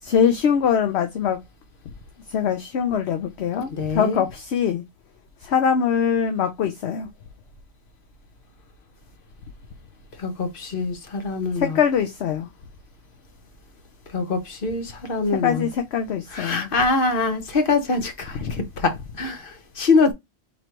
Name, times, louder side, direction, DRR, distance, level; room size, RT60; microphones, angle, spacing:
voice 1, 0.0-1.4 2.3-4.8 5.4-7.1 11.5-12.5 15.3-16.7 18.3-18.5, left 7 dB, 65° left, 0.9 m, -23 dB
voice 2, 3.7-4.2 10.2-11.8 14.1-15.6 16.3-20.1, left 3 dB, 50° left, 1.2 m, -24 dB
5.1 x 3.1 x 2.9 m
omnidirectional pair, 1.3 m